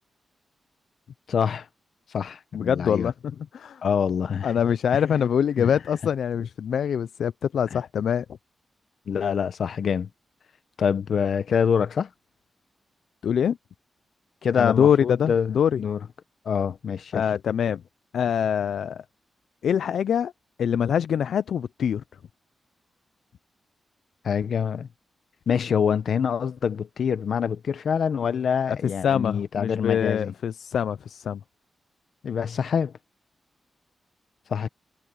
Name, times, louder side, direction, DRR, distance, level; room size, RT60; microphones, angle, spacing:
voice 1, 1.3-1.7 2.1-3.1 3.8-4.5 4.9-5.0 5.6-5.7 7.7-7.8 9.1-10.1 10.8-12.1 14.4-16.0 16.4-17.2 24.2-24.9 25.5-30.3 32.2-32.9 34.5-34.7, left 7 dB, 65° left, 1.0 m, -25 dB
voice 2, 2.5-3.1 3.5-3.8 4.4-8.2 13.2-13.6 14.6-15.8 17.1-17.8 18.1-19.0 19.6-20.3 20.6-22.0 28.8-31.4, left 8 dB, 90° left, 0.4 m, -24 dB
wide cardioid pair, 150°, 0 cm